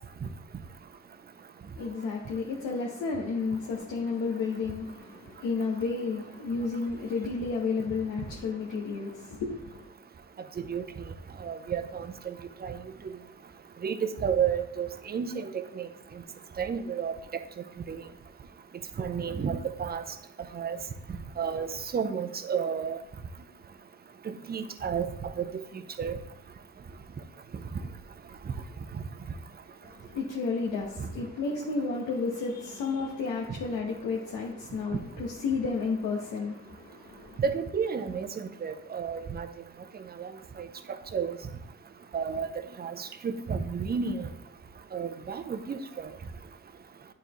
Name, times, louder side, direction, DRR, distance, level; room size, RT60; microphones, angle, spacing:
voice 1, 1.8-9.9 29.8-37.4, left 4 dB, 80° left, 1.1 m, -32 dB
voice 2, 11.4-12.3 12.6-12.8 13.8-15.9 16.6-17.1 17.9-18.0 19.0-20.0 20.5-20.8 21.4-23.0 24.3-25.5 26.0-26.2 31.0-31.1 37.4-39.5 40.2-40.3 40.6-40.7 41.1-41.4 42.1-42.5 42.8-44.3 44.9-46.1, right 6 dB, 30° right, 0.6 m, -31 dB
9.1 x 4.1 x 3.1 m
cardioid pair, 90°, 30 cm